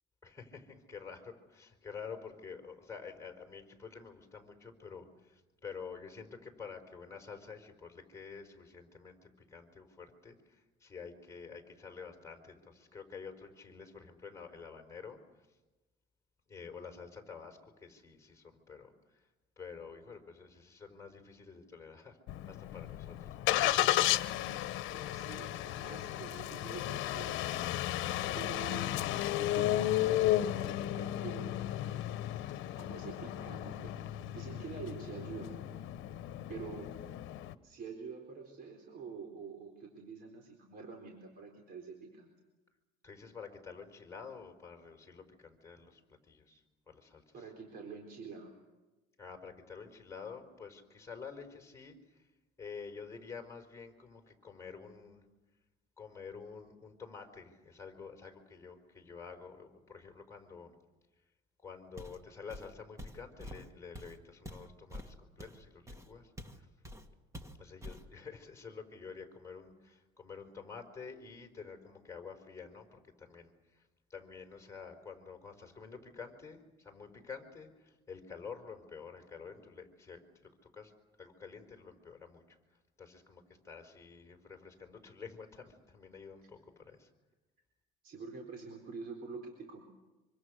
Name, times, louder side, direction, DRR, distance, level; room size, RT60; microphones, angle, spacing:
voice 1, 0.2-15.2 16.5-19.3 19.6-22.2 22.5-23.4 43.0-47.4 49.2-52.3 52.6-55.2 56.0-60.7 61.6-66.7 67.6-80.9 81.2-82.6 83.0-87.1, left 5 dB, 15° left, 3 dB, 4.8 m, -49 dB
Engine starting, 22.3-37.5, left 14 dB, 75° left, 1.1 m, -34 dB
voice 2, 24.9-27.4 28.3-29.0 29.4-32.2 32.8-35.6 36.5-36.9 37.6-42.3 47.3-48.6 88.0-89.8, right 5 dB, 50° right, 2 dB, 4.2 m, -47 dB
Walk footsteps, 62.0-62.2 62.5-66.6 66.8-67.1 67.3-68.1, equal, 15° right, 2.2 m, -47 dB
25.5 x 25.5 x 6.5 m, 1.1 s
cardioid pair, 125°, 20 cm